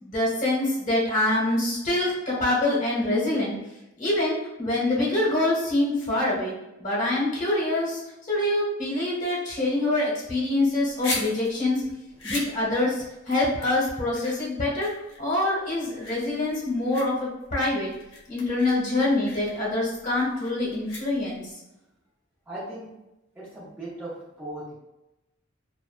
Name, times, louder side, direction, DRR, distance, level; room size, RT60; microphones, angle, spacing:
voice 1, 0.0-3.5 4.0-6.5 6.8-8.0 8.3-11.8 12.2-14.9 15.2-17.9 18.3-21.4, left 2 dB, 40° left, -5 dB, 1.1 m, -25 dB
sound 1, 10.6-21.5, left 2 dB, 65° left, 0.7 m, -39 dB
voice 2, 22.5-22.9 23.3-24.7, right 1 dB, 10° right, -11 dB, 0.7 m, -37 dB
2.6 x 2.1 x 2.4 m, 0.92 s
head